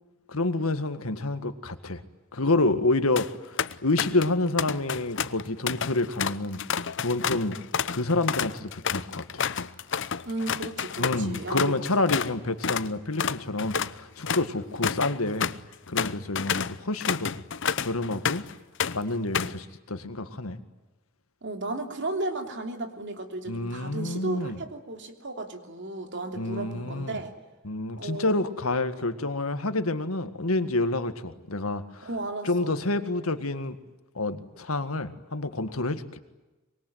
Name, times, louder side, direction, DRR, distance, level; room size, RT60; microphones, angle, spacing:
voice 1, 0.3-2.0 2.3-7.6 7.9-9.4 11.0-15.5 15.9-17.4 17.8-18.4 18.9-20.6 23.5-24.6 26.4-27.2 27.6-32.1 32.4-33.8 34.2-36.2, left 2 dB, 85° left, 10 dB, 1.9 m, -28 dB
sound 1, 2.9-3.3 3.6-4.3 4.6-12.3 12.6-12.9 13.2-18.5 18.8-19.6, left 7 dB, 60° left, 0.8 m, -30 dB
voice 2, 10.2-11.7 21.4-27.3 28.0-28.5 32.0-32.8, right 2 dB, 55° right, 5 dB, 3.1 m, -34 dB
25.0 x 23.0 x 9.3 m, 1.1 s
head